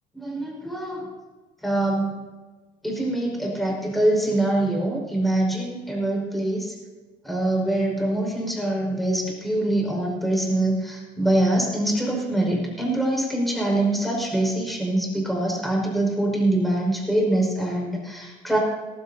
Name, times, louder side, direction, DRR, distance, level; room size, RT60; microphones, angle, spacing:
voice 1, 0.1-1.1 1.6-2.2 2.8-6.7 7.2-18.6, right 1 dB, ahead, -2 dB, 5.4 m, -24 dB
19.0 x 15.0 x 2.9 m, 1.3 s
cardioid pair, 110°, 17 cm